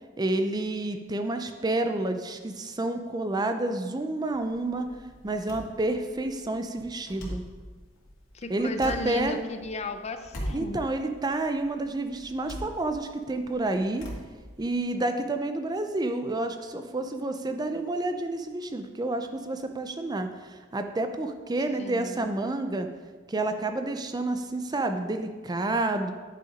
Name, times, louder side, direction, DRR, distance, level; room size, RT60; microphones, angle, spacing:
voice 1, 0.2-4.9 5.2-7.4 8.5-9.4 10.5-14.1 14.6-22.9 23.3-26.1, right 2 dB, 20° right, 7 dB, 0.5 m, -29 dB
sound 1, 4.3-14.8, equal, 85° left, 2.3 m, -42 dB
voice 2, 8.3-10.8 21.8-22.3, left 3 dB, 35° left, 8 dB, 0.5 m, -35 dB
10.0 x 5.7 x 5.1 m, 1.4 s
head